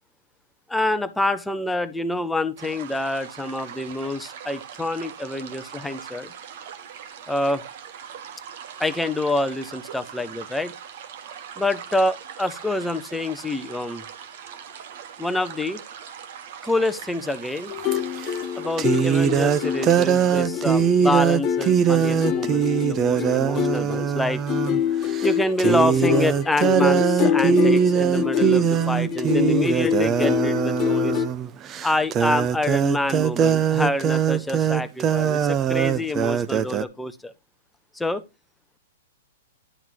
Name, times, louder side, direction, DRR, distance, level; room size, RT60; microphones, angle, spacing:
voice 1, 0.7-6.3 7.3-7.6 8.8-10.7 11.6-14.0 15.2-15.8 16.6-17.7 18.5-24.4 25.2-31.2 31.8-37.3 37.9-38.2, left 2 dB, 5° left, 0.8 m, -26 dB
sound 1, 2.6-20.4, right 8 dB, 55° right, 1.3 m, -41 dB
sound 2, 17.7-31.3, left 9 dB, 25° left, 1.4 m, -26 dB
sound 3, 17.9-18.0 18.8-24.8 25.1-25.3 25.6-36.8, right 8 dB, 25° right, 0.6 m, -21 dB
11.0 x 3.7 x 4.6 m
hypercardioid pair, 130°, 0 cm